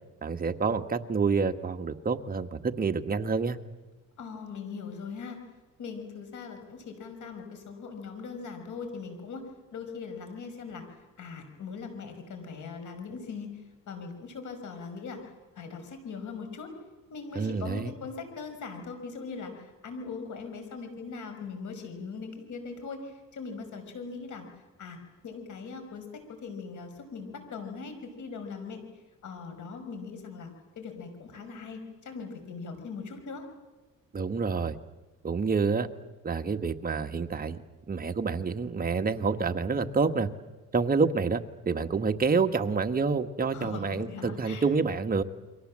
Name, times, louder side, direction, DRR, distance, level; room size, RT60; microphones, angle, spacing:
voice 1, 0.2-3.6 17.3-17.9 34.1-34.8 35.2-35.9 36.2-37.6 37.9-40.3 40.7-41.4 41.6-45.2, right 4 dB, 25° right, 6 dB, 1.4 m, -28 dB
voice 2, 4.2-5.4 5.8-10.8 11.2-15.3 15.5-16.7 17.1-25.0 25.2-28.8 29.2-30.5 30.8-33.4 43.5-44.6, left 5 dB, 65° left, 7 dB, 5.7 m, -40 dB
29.5 x 23.5 x 7.6 m, 1.2 s
cardioid pair, 110°, 33 cm